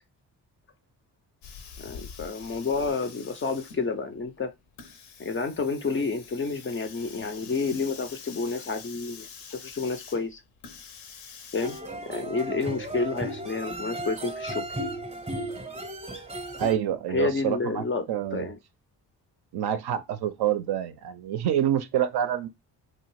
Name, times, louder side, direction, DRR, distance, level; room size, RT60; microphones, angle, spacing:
Hiss, 1.4-11.8, left 6 dB, 75° left, 0.7 m, -46 dB
voice 1, 1.8-4.5 5.2-10.4 11.5-11.8 12.1-14.6 17.1-18.1 18.3-18.6, left 4 dB, 25° left, 0.4 m, -30 dB
sound 1, 11.6-16.7, right 1 dB, 15° right, 0.7 m, -35 dB
voice 2, 16.6-18.5 19.5-22.5, right 10 dB, 55° right, 0.5 m, -27 dB
2.5 x 2.3 x 3.0 m
hypercardioid pair, 40°, 50 cm